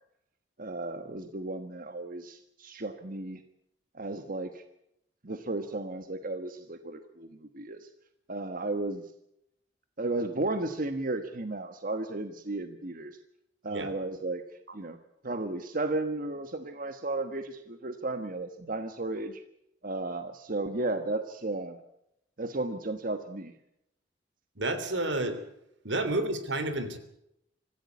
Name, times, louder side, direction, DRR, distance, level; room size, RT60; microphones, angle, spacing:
voice 1, 0.6-3.4 3.9-4.6 5.2-7.9 8.3-9.1 10.0-13.2 13.6-14.4 14.7-15.0 15.2-19.4 19.8-21.8 22.4-23.5, right 2 dB, 50° right, 8 dB, 1.3 m, -34 dB
voice 2, 24.6-25.4 25.8-27.0, right 2 dB, 80° right, 10 dB, 3.3 m, -30 dB
25.0 x 15.0 x 8.4 m, 0.81 s
head